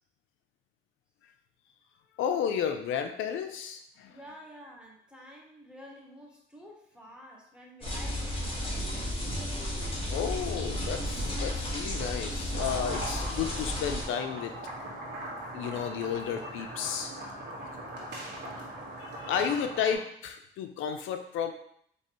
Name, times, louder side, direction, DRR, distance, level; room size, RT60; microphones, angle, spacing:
voice 1, 2.2-4.2 10.1-14.5 15.5-17.1 17.8-17.9 19.0-21.5, left 8 dB, 85° left, 6 dB, 0.4 m, -32 dB
voice 2, 4.1-9.3, equal, 5° right, -1 dB, 1.0 m, -50 dB
sound 1, 7.8-14.0, equal, 25° left, 1.4 m, -33 dB
sound 2, 12.5-19.9, right 1 dB, 55° right, 1.5 m, -40 dB
4.6 x 2.9 x 3.0 m, 0.68 s
cardioid pair, 90°, 20 cm